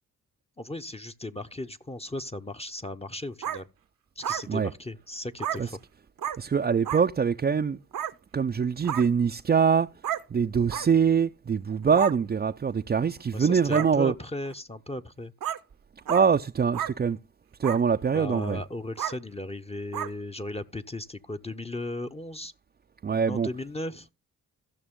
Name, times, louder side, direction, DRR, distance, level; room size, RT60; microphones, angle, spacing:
voice 1, 0.6-3.7 4.2-5.8 13.3-15.3 18.1-22.5 23.3-24.1, left 1 dB, 15° left, 0.7 m, -36 dB
sound 1, 3.4-3.6 4.2-4.4 5.4-5.6 6.2-6.4 6.8-7.0 7.9-8.1 8.8-9.1 10.0-10.2 10.7-10.9 11.9-12.1 13.0-13.1 13.7-13.9 14.5-14.6 15.4-15.6 16.1-16.2 16.7-16.9 17.6-17.8 18.3-18.5 19.0-19.1 19.9-20.1, right 10 dB, 60° right, 0.7 m, -31 dB
voice 2, 6.4-7.8 8.3-9.9 10.3-14.1 16.1-17.2 17.6-18.6 23.0-23.5, right 6 dB, 25° right, 0.4 m, -24 dB
15.0 x 6.1 x 3.6 m
supercardioid pair, 45°, 38 cm